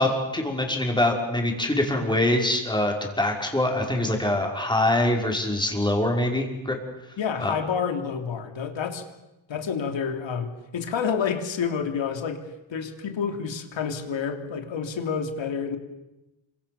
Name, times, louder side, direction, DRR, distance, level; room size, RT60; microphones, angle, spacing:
voice 1, 0.0-6.8 7.4-7.5, left 1 dB, 10° left, 1 dB, 5.7 m, -24 dB
voice 2, 7.2-9.1 9.5-15.8, left 6 dB, 70° left, 6 dB, 3.3 m, -29 dB
28.0 x 25.5 x 7.2 m, 0.99 s
cardioid pair, 95°, 47 cm